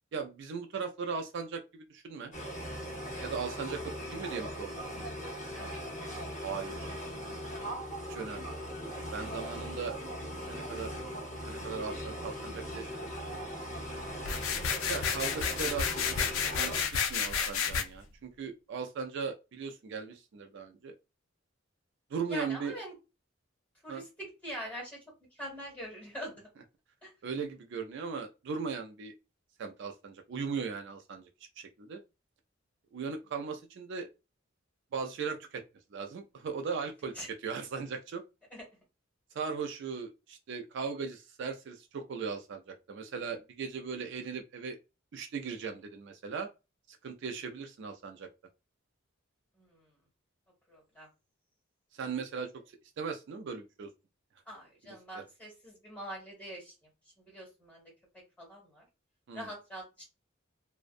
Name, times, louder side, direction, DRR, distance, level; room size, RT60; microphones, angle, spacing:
voice 1, 0.1-2.3 3.2-4.7 6.4-6.9 8.1-8.6 9.1-9.9 10.4-13.1 14.9-16.3 16.6-16.7 17.1-20.9 22.1-22.7 23.9-24.0 27.2-29.1 29.6-31.3 31.6-32.0 32.9-34.1 34.9-35.6 35.9-38.2 39.3-44.8 45.1-46.5 46.9-48.3 51.9-52.5 53.0-53.9 55.1-55.2 59.3-59.5, right 5 dB, 60° right, 0.4 m, -38 dB
sound 1, 2.3-16.9, equal, 35° left, 0.8 m, -39 dB
sound 2, 14.2-17.8, left 6 dB, 90° left, 0.4 m, -31 dB
voice 2, 22.3-22.9 23.8-25.0 25.3-26.5 27.0-27.1 37.1-37.3 38.5-38.6 49.6-49.9 50.7-51.1 54.5-56.7 57.2-57.8 58.4-58.9 59.3-60.0, equal, 10° left, 1.5 m, -43 dB
2.5 x 2.1 x 2.4 m
head